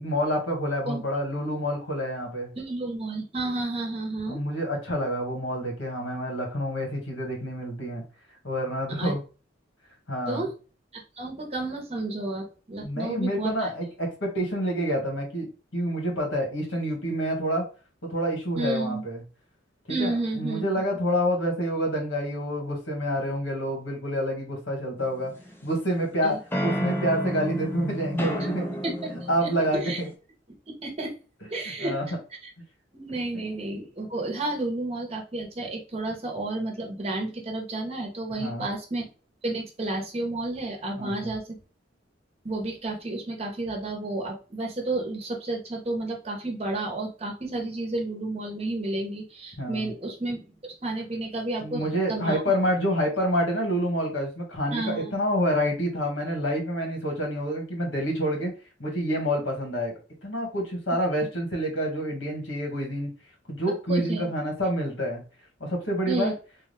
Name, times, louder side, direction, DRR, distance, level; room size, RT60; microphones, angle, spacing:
voice 1, 0.0-2.5 4.3-8.0 8.4-9.2 10.1-10.5 12.8-17.7 18.0-19.2 19.9-25.3 25.6-28.7 29.1-30.1 31.8-32.1 33.3-33.4 38.3-38.7 40.9-41.3 49.6-49.9 51.6-58.5 58.8-59.9 60.2-63.1 63.5-65.2 65.6-66.3, equal, 85° left, 0 dB, 1.6 m, -28 dB
voice 2, 2.6-4.4 9.0-9.1 10.3-10.5 10.9-13.7 18.6-19.0 19.9-20.6 26.2-26.4 28.8-29.1 29.4-30.0 30.7-31.2 31.5-32.0 32.4-32.5 32.9-39.1 39.4-41.6 42.4-51.8 52.1-52.4 54.7-55.2 63.9-64.3 66.1-66.3, right 2 dB, 35° right, 0 dB, 1.0 m, -31 dB
sound 1, 25.0-25.9 26.5-30.1, equal, 10° left, 0.6 m, -31 dB
3.6 x 2.3 x 3.3 m, 0.34 s
head